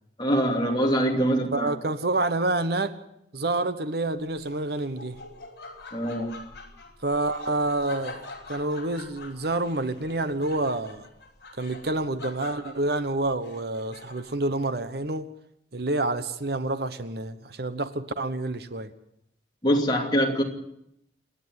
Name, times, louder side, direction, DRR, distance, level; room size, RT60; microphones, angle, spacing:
voice 1, 0.2-1.7 5.9-6.3 19.6-20.4, equal, 25° left, 2.8 m, -23 dB
voice 2, 1.5-3.0 3.3-5.2 7.0-11.0 11.6-15.3 15.7-18.9, right 2 dB, 60° right, 1.1 m, -28 dB
Laughter, 4.4-14.4, left 3 dB, 60° left, 4.9 m, -45 dB
27.5 x 10.5 x 9.4 m
head